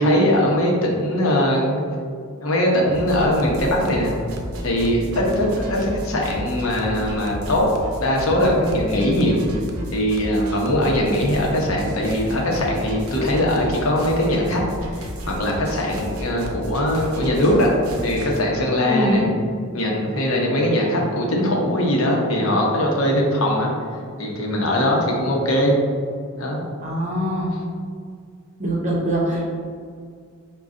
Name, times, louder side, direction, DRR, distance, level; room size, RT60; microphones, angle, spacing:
voice 1, 0.0-1.8 2.4-4.1 4.6-7.7 8.0-9.4 9.9-14.6 15.0-17.7 18.0-19.3 19.7-23.7 24.2-25.7 26.4-26.6, left 1 dB, 75° left, -1 dB, 0.8 m, -21 dB
sound 1, 2.9-18.4, equal, 80° right, 0.6 m, -33 dB
voice 2, 18.8-19.3 26.8-27.5 28.6-29.5, equal, 35° right, -3 dB, 0.9 m, -23 dB
5.2 x 2.3 x 3.6 m, 2.1 s
head